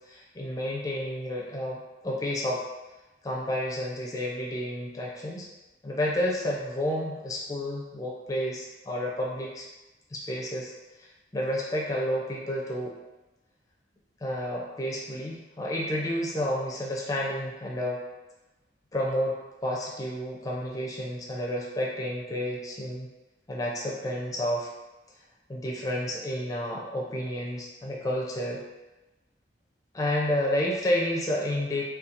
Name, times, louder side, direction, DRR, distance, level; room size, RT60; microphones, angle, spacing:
voice 1, 0.1-2.6 3.2-5.5 5.8-9.6 10.1-10.7 11.3-12.9 14.2-18.0 18.9-23.1 23.5-24.7 25.5-28.6 29.9-31.8, left 1 dB, 20° left, -3 dB, 0.4 m, -30 dB
2.7 x 2.3 x 2.5 m, 1.0 s
head